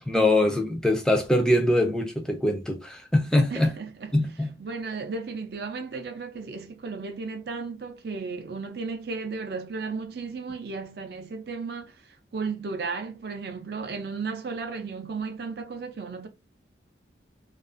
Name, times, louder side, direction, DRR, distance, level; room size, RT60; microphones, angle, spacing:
voice 1, 0.1-3.7 4.1-4.5, left 1 dB, 5° left, 0.4 m, -23 dB
voice 2, 3.5-4.2 4.6-12.0 12.3-16.3, right 4 dB, 60° right, 0.4 m, -34 dB
2.4 x 2.3 x 2.5 m
head